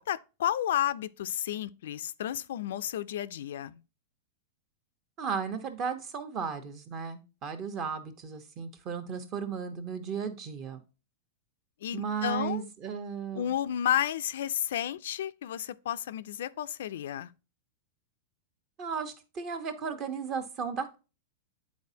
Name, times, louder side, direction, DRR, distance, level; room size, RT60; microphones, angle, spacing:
voice 1, 0.0-3.8 11.8-12.6 13.3-17.3, left 11 dB, 75° left, 0.4 m, -32 dB
voice 2, 5.2-10.8 11.9-13.5 18.8-20.9, right 6 dB, 30° right, 1.0 m, -35 dB
9.4 x 4.2 x 2.8 m
supercardioid pair, 155°, 0 cm